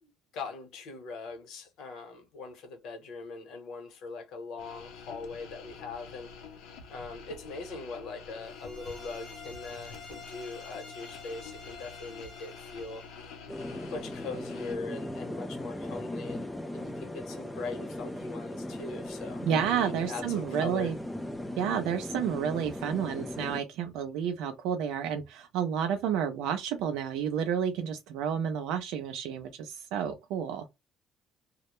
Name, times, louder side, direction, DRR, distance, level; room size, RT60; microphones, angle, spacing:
voice 1, 0.0-6.3 6.9-13.1 13.9-19.4 19.7-20.9, left 4 dB, 60° left, 0.9 m, -41 dB
sound 1, 4.6-14.8, left 5 dB, 90° left, 0.6 m, -47 dB
sound 2, 8.4-13.2, left 3 dB, 25° left, 0.7 m, -49 dB
sound 3, 13.5-23.6, left 1 dB, 5° left, 0.3 m, -38 dB
voice 2, 19.4-21.0 21.6-30.6, right 8 dB, 80° right, 0.4 m, -30 dB
2.1 x 2.0 x 2.9 m
cardioid pair, 160°, 0 cm